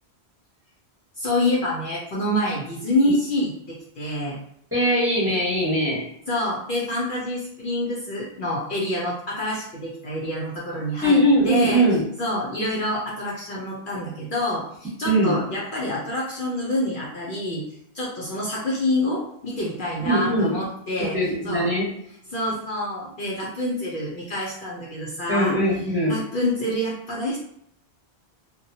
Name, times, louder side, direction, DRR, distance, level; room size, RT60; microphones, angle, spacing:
voice 1, 1.2-4.4 6.3-11.2 11.4-11.8 12.2-17.6 17.9-21.2 21.4-21.7 22.3-25.5 26.1-27.4, left 1 dB, 60° left, -5 dB, 0.7 m, -27 dB
voice 2, 4.7-6.0 11.0-12.0 15.0-15.4 20.0-20.5 21.1-21.9 25.3-26.2, equal, 15° right, -8 dB, 1.0 m, -21 dB
2.8 x 2.2 x 2.6 m, 0.72 s
omnidirectional pair, 1.1 m